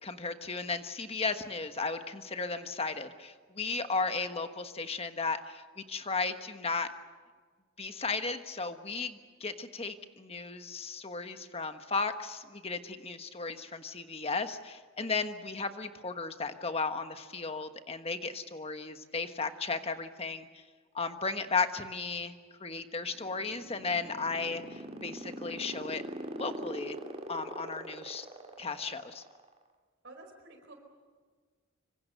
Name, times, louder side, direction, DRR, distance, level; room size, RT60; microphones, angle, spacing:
voice 1, 0.0-6.9 7.8-20.5 20.9-22.3 22.6-26.0 26.4-27.0 27.3-28.3 28.6-29.2, left 4 dB, 30° left, 8 dB, 1.4 m, -35 dB
sound 1, 23.0-29.6, right 1 dB, 30° right, 2.5 m, -41 dB
voice 2, 30.0-30.7, right 2 dB, 55° right, 3 dB, 4.5 m, -50 dB
25.5 x 25.5 x 6.7 m, 1.5 s
head